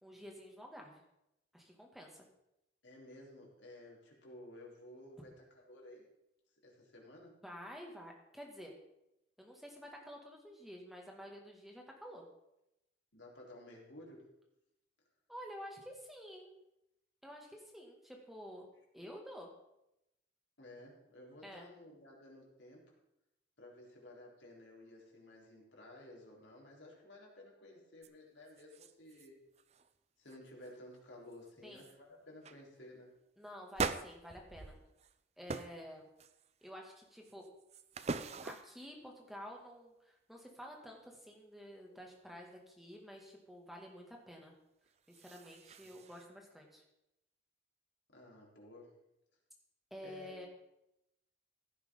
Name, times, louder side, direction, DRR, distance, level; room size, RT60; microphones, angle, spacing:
voice 1, 0.0-1.0 1.5-2.2 7.4-8.7 9.4-12.3 15.3-16.5 17.2-19.5 21.4-21.7 31.6-31.9 33.4-34.8 35.4-36.1 36.6-37.5 38.4-44.5 45.2-46.8 49.9-50.5, equal, ahead, 0 dB, 2.2 m, -50 dB
voice 2, 2.8-6.0 6.6-7.3 13.1-14.2 20.6-23.0 23.6-29.4 30.2-33.1 45.8-46.0 48.1-48.9 50.0-50.3, left 1 dB, 80° left, -2 dB, 4.0 m, -54 dB
sound 1, 28.0-28.1 28.5-29.3 29.5-29.9 30.3-30.7 31.3-31.4 31.8-32.0 32.4-32.6 33.7-35.1 35.5-35.8 36.2-36.7 37.2-38.9 44.9-46.2, right 4 dB, 35° right, 0.5 m, -42 dB
16.0 x 10.5 x 3.9 m, 0.86 s
head